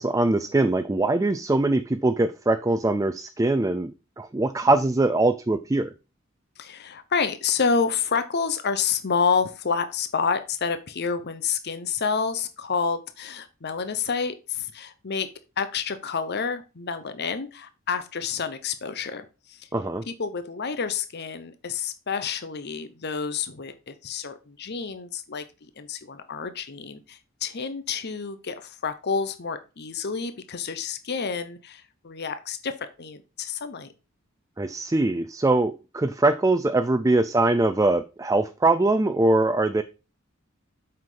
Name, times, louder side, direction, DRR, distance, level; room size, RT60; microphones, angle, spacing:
voice 1, 0.0-5.9 19.7-20.0 34.6-39.8, right 2 dB, 15° right, 10 dB, 0.4 m, -22 dB
voice 2, 6.6-15.3 15.6-19.7 20.1-33.9, left 5 dB, 55° left, 11 dB, 0.8 m, -29 dB
7.8 x 5.8 x 3.9 m, 0.31 s
head